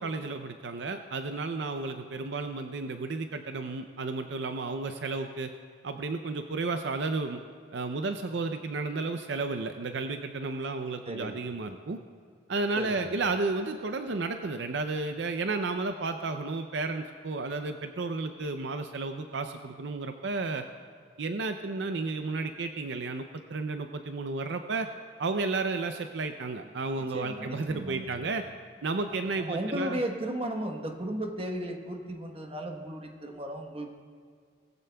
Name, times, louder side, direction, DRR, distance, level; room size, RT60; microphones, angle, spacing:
voice 1, 0.0-5.5 5.8-7.4 7.7-12.0 12.5-20.7 21.2-24.9 25.2-28.4 28.8-30.0, right 3 dB, 65° right, 7 dB, 0.5 m, -32 dB
voice 2, 11.1-11.4 12.8-13.2 27.0-28.1 29.5-33.9, right 1 dB, 30° right, 3 dB, 1.1 m, -35 dB
20.5 x 15.0 x 2.3 m, 2.2 s
head